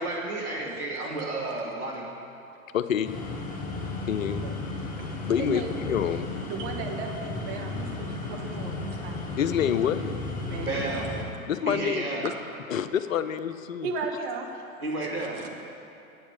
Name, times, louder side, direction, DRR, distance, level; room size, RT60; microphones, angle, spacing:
voice 1, 0.0-2.0 10.6-11.1 11.6-12.2 14.8-15.4, right 2 dB, 85° right, -4 dB, 2.4 m, -31 dB
voice 2, 2.7-3.2 4.1-4.5 5.3-6.3 9.4-10.1 11.5-12.3 12.7-13.9, left 9 dB, 65° left, 11 dB, 0.6 m, -27 dB
sound 1, 3.0-11.2, left 2 dB, 20° left, 1.5 m, -34 dB
voice 3, 5.0-5.8 6.4-9.2 10.4-10.9 13.8-14.6 15.3-15.6, right 4 dB, 45° right, 1 dB, 1.5 m, -36 dB
8.7 x 7.1 x 8.0 m, 2.9 s
figure-of-eight pair, 95°, 43 cm